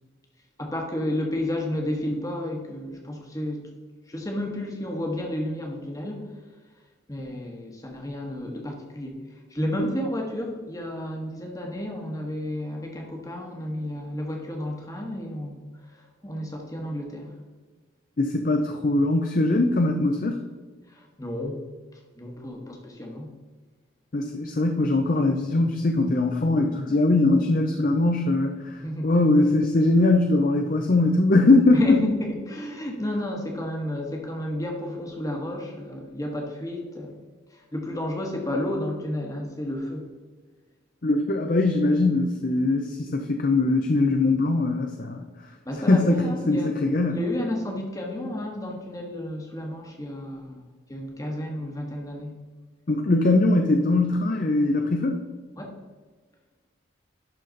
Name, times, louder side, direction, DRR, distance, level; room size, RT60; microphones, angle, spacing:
voice 1, 0.6-3.7 4.1-6.3 7.1-17.3 20.9-21.6 22.1-23.3 28.8-29.1 31.7-37.2 37.5-40.1 45.6-46.7 47.1-50.6 50.9-52.3 55.6-55.8, left 1 dB, 20° left, 1 dB, 1.2 m, -32 dB
voice 2, 18.2-20.4 24.1-28.8 29.0-32.0 41.0-45.2 45.9-47.2 52.9-55.2, left 2 dB, 45° left, 4 dB, 0.5 m, -21 dB
11.5 x 4.2 x 3.9 m, 1.4 s
head